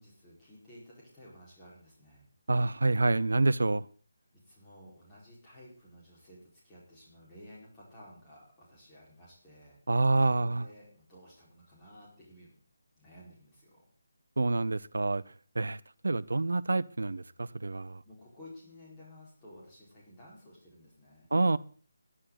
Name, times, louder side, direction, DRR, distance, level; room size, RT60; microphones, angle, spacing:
voice 1, 0.0-2.3 4.3-9.8 10.1-12.6 13.0-13.8 18.0-21.3, left 1 dB, 15° left, 4.9 m, -54 dB
voice 2, 2.5-3.9 9.9-10.7 14.4-15.2 15.5-18.0 21.3-21.6, right 2 dB, 60° right, 0.6 m, -27 dB
21.0 x 9.9 x 4.1 m
figure-of-eight pair, 150°, 0 cm